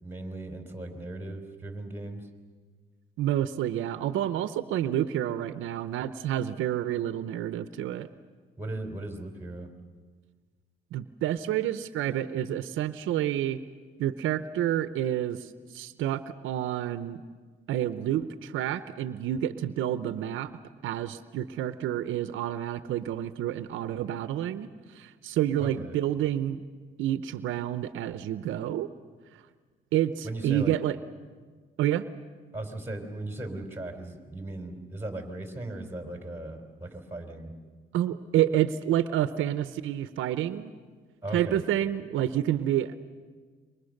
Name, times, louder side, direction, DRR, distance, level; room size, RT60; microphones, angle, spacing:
voice 1, 0.0-2.3 8.6-9.7 25.6-25.9 30.2-30.8 32.5-37.5 41.2-41.6, right 2 dB, 10° right, 5 dB, 4.0 m, -37 dB
voice 2, 3.2-8.1 10.9-13.6 14.0-17.2 17.7-20.5 20.8-26.6 27.0-28.9 29.3-29.4 29.9-31.0 31.8-32.0 37.9-40.7 41.3-43.0, right 11 dB, 85° right, 13 dB, 0.8 m, -29 dB
27.5 x 24.0 x 6.6 m, 1.5 s
cardioid pair, 90°, 20 cm